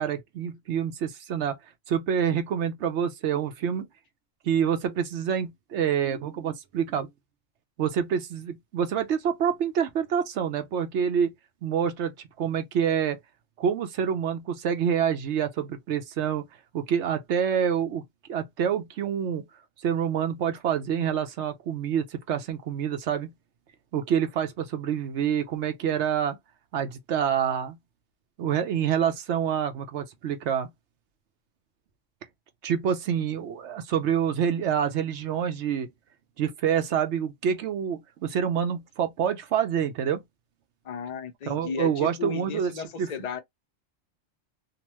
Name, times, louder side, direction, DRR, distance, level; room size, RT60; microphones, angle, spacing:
voice 1, 0.0-1.5 1.9-3.9 4.4-7.1 7.8-11.3 11.6-13.2 13.6-16.4 16.7-18.0 18.3-19.4 19.8-23.3 23.9-26.4 26.7-27.8 28.4-30.7 32.6-35.9 36.4-40.2 41.5-43.1, right 8 dB, 65° right, 0.9 m, -27 dB
voice 2, 40.8-43.4, left 6 dB, 60° left, 0.4 m, -34 dB
2.8 x 2.2 x 3.0 m
omnidirectional pair, 1.4 m